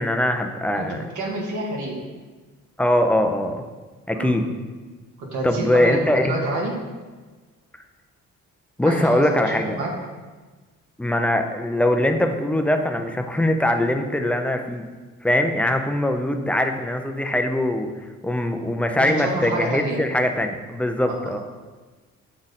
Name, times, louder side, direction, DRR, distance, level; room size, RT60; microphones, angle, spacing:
voice 1, 0.0-1.0 2.8-3.6 4.1-4.5 5.4-6.3 8.8-9.8 11.0-14.9 15.2-17.9 18.2-21.4, left 1 dB, 5° left, 5 dB, 0.5 m, -22 dB
voice 2, 0.7-2.1 4.1-4.4 5.2-6.8 8.8-9.9 19.0-20.0 21.2-21.4, right 2 dB, 75° right, 0 dB, 1.4 m, -28 dB
7.3 x 3.8 x 4.1 m, 1.3 s
cardioid pair, 90°, 30 cm